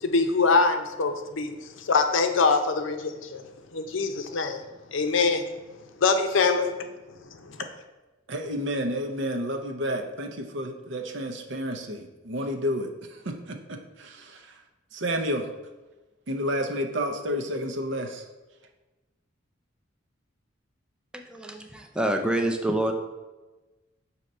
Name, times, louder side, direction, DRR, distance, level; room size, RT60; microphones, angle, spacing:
voice 1, 0.0-3.4 3.7-4.6 4.9-5.4 6.0-6.9 7.4-7.6, left 4 dB, 75° left, 7 dB, 0.6 m, -24 dB
voice 2, 8.3-14.6 14.9-15.5 16.3-18.3, equal, 65° right, 5 dB, 0.6 m, -30 dB
voice 3, 21.1-22.9, right 1 dB, 5° right, 3 dB, 0.5 m, -27 dB
6.3 x 2.9 x 5.3 m, 1.1 s
head